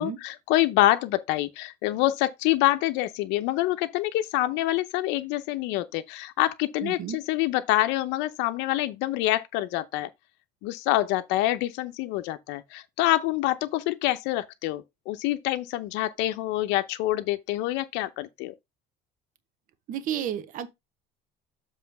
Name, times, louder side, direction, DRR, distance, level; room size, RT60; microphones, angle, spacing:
voice 1, 0.0-10.1 10.6-18.5, left 16 dB, 90° left, 0.7 m, -26 dB
voice 2, 6.8-7.2 19.9-20.7, right 10 dB, 50° right, 0.9 m, -31 dB
7.5 x 3.1 x 5.8 m
cardioid pair, 165°, 18 cm